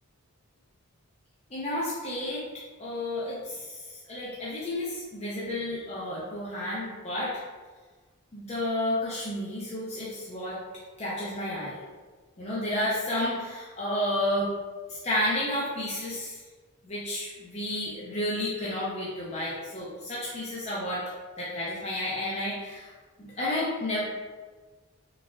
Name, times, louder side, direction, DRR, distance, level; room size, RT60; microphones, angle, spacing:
voice 1, 1.5-2.4 2.8-7.4 8.3-10.6 11.0-11.9 12.4-14.5 14.9-16.4 16.8-21.0 21.4-22.9 23.2-24.0, left 1 dB, 30° left, -8 dB, 0.5 m, -31 dB
3.9 x 2.4 x 2.3 m, 1.4 s
head